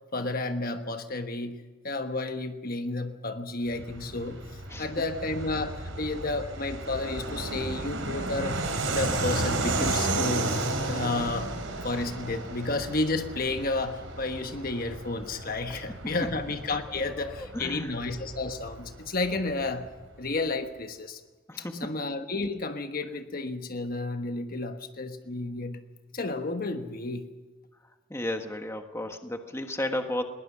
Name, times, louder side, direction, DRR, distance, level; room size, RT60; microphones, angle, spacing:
voice 1, 0.1-4.4 4.8-11.5 11.8-19.9 20.2-21.2 21.6-25.8 26.1-27.3, left 2 dB, 45° left, 7 dB, 1.2 m, -32 dB
Fixed-wing aircraft airplane, 3.7-19.9, right 2 dB, 70° right, 3.5 m, -33 dB
voice 2, 15.7-16.3 16.9-18.0 21.5-21.9 28.1-30.2, left 1 dB, 15° left, 5 dB, 1.4 m, -34 dB
21.5 x 20.0 x 6.2 m, 1.2 s
head